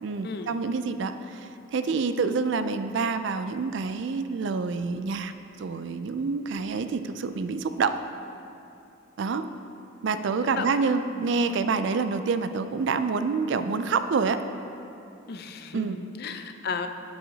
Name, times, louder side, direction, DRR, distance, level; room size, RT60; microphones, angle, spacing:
voice 1, 0.0-5.3 5.6-8.0 9.2-9.5 10.0-14.4 15.7-16.0, right 4 dB, 60° right, 10 dB, 0.4 m, -27 dB
voice 2, 15.3-16.9, left 5 dB, 50° left, 7 dB, 0.5 m, -34 dB
16.5 x 5.6 x 2.8 m, 2.7 s
head